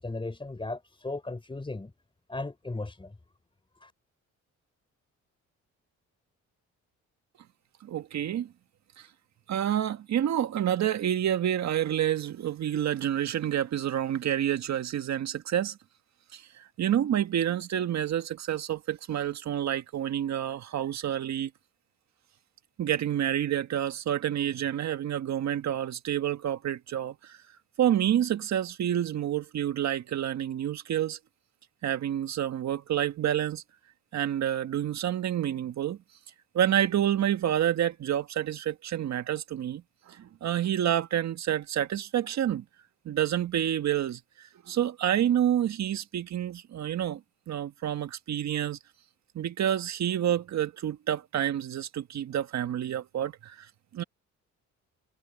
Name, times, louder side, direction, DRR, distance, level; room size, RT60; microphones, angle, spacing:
voice 1, 0.0-1.9 2.3-3.1 3.8-3.9, left 2 dB, 15° left, 3.7 m, -36 dB
voice 2, 7.8-8.5 9.0-9.1 9.5-15.8 16.3-21.5 22.8-27.4 27.8-31.2 31.8-33.6 34.1-36.0 36.5-42.6 43.1-47.2 47.5-48.8 49.4-54.0, right 10 dB, 65° right, 1.8 m, -28 dB
cardioid pair, 90°, 30 cm